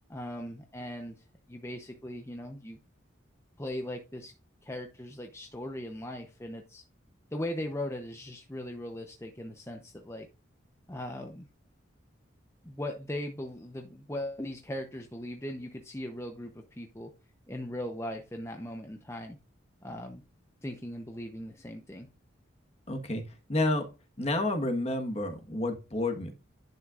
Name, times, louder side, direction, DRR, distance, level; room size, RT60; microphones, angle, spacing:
voice 1, 0.1-1.2 1.5-2.8 3.6-4.3 4.6-6.8 7.3-10.3 10.9-11.5 12.6-17.1 17.5-19.4 19.8-20.2 20.6-22.1, left 1 dB, 15° left, 4 dB, 0.7 m, -39 dB
voice 2, 22.9-23.2 23.5-23.9 24.2-26.3, left 2 dB, 30° left, 5 dB, 1.3 m, -30 dB
10.5 x 6.2 x 2.4 m, 0.30 s
head